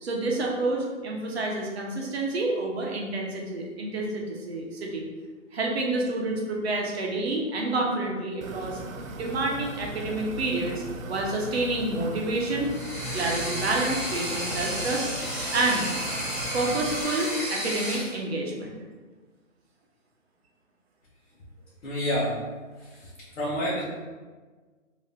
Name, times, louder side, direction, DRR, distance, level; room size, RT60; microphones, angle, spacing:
voice 1, 0.0-5.1 5.5-8.8 9.1-10.8 11.1-12.7 13.1-15.1 15.5-15.9 16.5-18.7, right 2 dB, 50° right, -1 dB, 0.8 m, -28 dB
sound 1, 8.4-17.0, right 2 dB, 85° right, 0.6 m, -38 dB
sound 2, 12.6-18.1, equal, 15° left, 0.5 m, -32 dB
voice 2, 21.8-22.4 23.0-23.1 23.4-23.8, equal, 60° left, -7 dB, 1.0 m, -27 dB
2.8 x 2.7 x 3.4 m, 1.4 s
hypercardioid pair, 155°, 40 cm